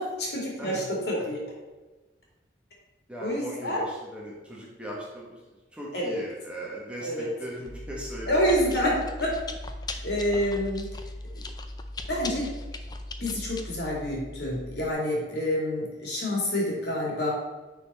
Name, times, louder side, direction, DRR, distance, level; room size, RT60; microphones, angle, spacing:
voice 1, 0.0-1.4 3.2-3.8 5.9-6.2 7.0-7.3 8.3-8.9 9.2-9.3 10.0-10.8 12.1-12.5 13.2-17.3, equal, 60° left, -3 dB, 2.5 m, -27 dB
voice 2, 3.1-5.4 5.7-8.7 10.3-10.6, right 1 dB, 5° right, -5 dB, 1.5 m, -39 dB
Chewing mastication, 7.6-14.9, left 2 dB, 20° left, 0.5 m, -38 dB
9.8 x 4.4 x 4.3 m, 1.2 s
head